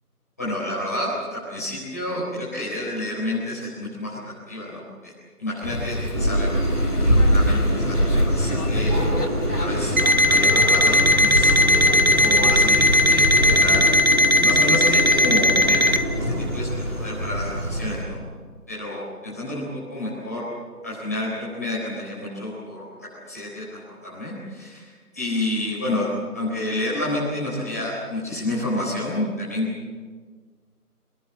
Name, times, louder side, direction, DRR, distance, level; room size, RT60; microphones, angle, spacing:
voice 1, 0.4-5.1 5.4-6.6 7.1-8.9 9.6-10.0 10.3-13.8 14.4-15.8 16.2-18.3 18.7-20.4 20.8-22.8 23.2-26.1 26.3-29.7, left 1 dB, 10° left, -8 dB, 4.1 m, -29 dB
sound 1, 5.6-14.0, left 1 dB, 75° left, 3.2 m, -28 dB
sound 2, 6.1-18.0, equal, 15° right, 3.1 m, -24 dB
Alarm, 10.0-16.0, left 1 dB, 60° right, 1.7 m, -18 dB
27.0 x 21.0 x 7.6 m, 1.5 s
figure-of-eight pair, 175°, 46 cm